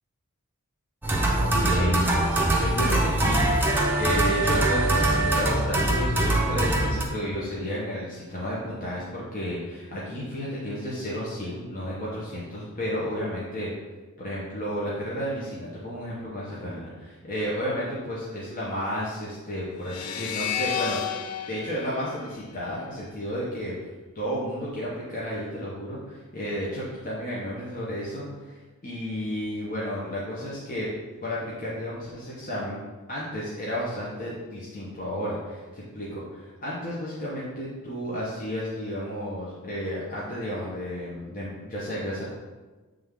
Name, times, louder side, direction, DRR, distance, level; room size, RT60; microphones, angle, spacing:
sound 1, 1.0-7.0, right 1 dB, 10° right, 0.7 m, -23 dB
voice 1, 1.4-13.7 14.2-21.0 21.5-23.7 24.1-30.9 31.2-32.8 33.1-42.2, equal, 40° left, -7 dB, 1.1 m, -32 dB
sound 2, 19.8-23.1, left 9 dB, 85° left, 0.5 m, -32 dB
7.7 x 3.4 x 3.7 m, 1.3 s
head